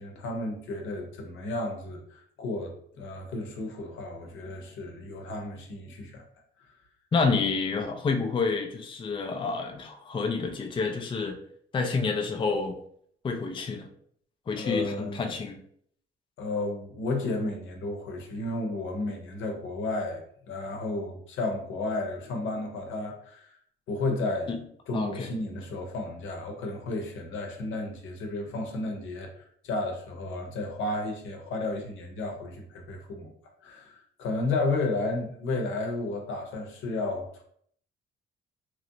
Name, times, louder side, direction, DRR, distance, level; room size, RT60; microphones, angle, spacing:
voice 1, 0.0-6.2 14.6-15.2 16.4-23.5 23.9-24.6 24.9-29.3 29.6-33.3 33.6-33.9 34.2-37.4, left 2 dB, 80° left, 2 dB, 0.8 m, -32 dB
voice 2, 7.1-11.4 11.7-12.8 13.2-13.9 14.5-15.6 24.5-24.6 24.9-25.3, left 4 dB, 25° left, 4 dB, 0.4 m, -28 dB
3.0 x 2.7 x 2.6 m, 0.65 s
cardioid pair, 90°, 20 cm